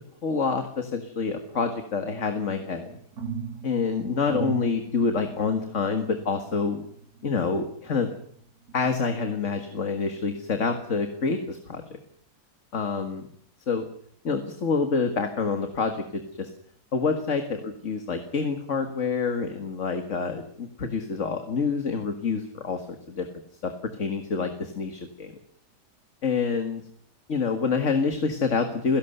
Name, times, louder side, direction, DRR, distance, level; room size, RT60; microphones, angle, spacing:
voice 1, 0.2-3.0 3.6-6.8 7.2-8.1 8.7-12.0 12.7-13.3 13.7-13.9 14.2-16.5 16.9-23.3 23.6-23.7 24.0-25.3 26.2-26.8 27.3-29.0, left 5 dB, 50° left, 6 dB, 2.1 m, -27 dB
sound 1, 2.4-8.2 8.7-9.8 10.3-10.4, right 6 dB, 65° right, 2.7 m, -39 dB
29.0 x 17.0 x 6.8 m, 0.64 s
omnidirectional pair, 1.7 m